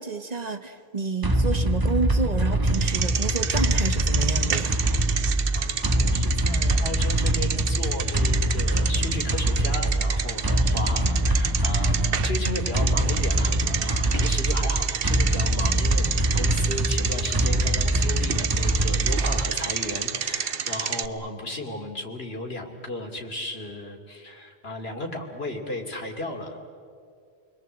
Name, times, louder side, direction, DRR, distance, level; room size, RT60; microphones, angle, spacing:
voice 1, 0.0-4.8, right 4 dB, 40° right, 8 dB, 1.1 m, -30 dB
sound 1, 1.2-19.6, right 1 dB, 20° right, 1.1 m, -24 dB
Bicycle, 2.7-21.1, right 7 dB, 65° right, 1.0 m, -30 dB
voice 2, 5.5-26.7, left 1 dB, 70° left, 3 dB, 3.0 m, -35 dB
29.0 x 22.0 x 7.8 m, 2.3 s
omnidirectional pair, 1.1 m